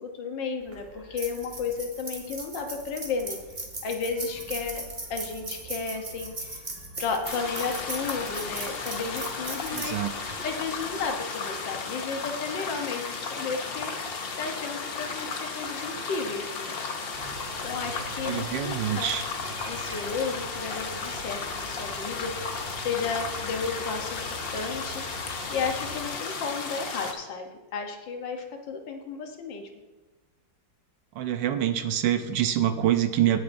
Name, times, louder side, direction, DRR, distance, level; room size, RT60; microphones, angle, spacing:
voice 1, 0.0-3.4 3.8-4.8 5.1-6.6 7.0-10.0 10.4-14.1 14.4-16.8 17.6-19.1 19.6-22.3 22.8-29.7, left 5 dB, 75° left, 4 dB, 1.7 m, -33 dB
sound 1, 0.6-11.1, right 2 dB, 25° right, 1.4 m, -39 dB
sound 2, 7.2-27.1, left 4 dB, 50° left, 0.7 m, -34 dB
voice 2, 9.7-10.1 18.2-19.2 31.1-33.4, right 11 dB, 75° right, 9 dB, 1.3 m, -26 dB
sound 3, 17.1-26.1, right 3 dB, 50° right, 0.7 m, -44 dB
17.0 x 6.8 x 2.6 m, 1.1 s
omnidirectional pair, 2.1 m